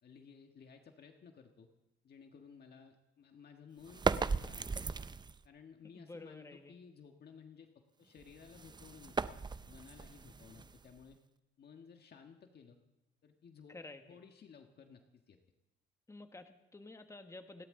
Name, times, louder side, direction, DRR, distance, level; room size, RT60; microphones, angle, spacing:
voice 1, 0.0-1.7 2.0-5.0 5.4-9.4 9.7-11.2 11.6-12.8 13.2-13.8 14.1-15.4, left 6 dB, 55° left, 4 dB, 1.5 m, -57 dB
sound 1, 3.8-5.5 8.2-11.1, right 4 dB, 20° right, 0.5 m, -37 dB
voice 2, 5.9-6.7 13.7-14.2 16.1-17.7, left 2 dB, 15° left, 6 dB, 1.5 m, -51 dB
30.0 x 12.0 x 3.8 m, 0.95 s
cardioid pair, 90°, 20 cm